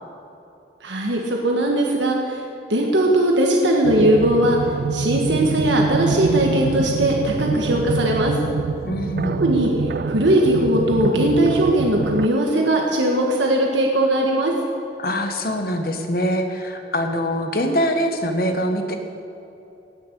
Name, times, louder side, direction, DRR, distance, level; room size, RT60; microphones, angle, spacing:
voice 1, 0.8-2.4 2.7-4.6 4.9-8.4 9.4-9.7 10.0-14.5, right 1 dB, 85° right, 0 dB, 1.5 m, -19 dB
sound 1, 3.8-12.3, right 4 dB, 55° right, 0.3 m, -26 dB
voice 2, 8.8-9.5 15.0-19.0, equal, 50° left, 5 dB, 1.2 m, -23 dB
18.0 x 6.8 x 6.8 m, 2.8 s
head